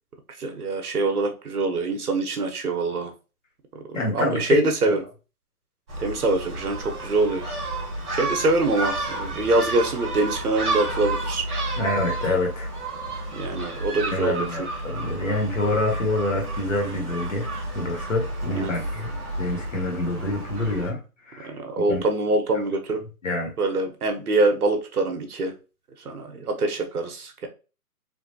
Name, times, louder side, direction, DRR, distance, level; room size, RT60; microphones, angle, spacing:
voice 1, 0.4-3.1 4.1-5.0 6.0-7.4 8.1-11.4 13.3-14.7 18.5-18.7 21.4-23.0 23.6-25.5 26.0-27.5, right 2 dB, 65° right, 4 dB, 1.0 m, -24 dB
voice 2, 3.9-5.0 11.8-12.7 14.1-19.1 19.4-21.0 21.3-21.5 21.9-22.0 23.2-23.5, left 2 dB, 50° left, 1 dB, 1.4 m, -26 dB
Gull seagull, 5.9-20.9, right 2 dB, 20° right, 1.2 m, -31 dB
3.6 x 2.6 x 2.7 m, 0.33 s
hypercardioid pair, 170°, 47 cm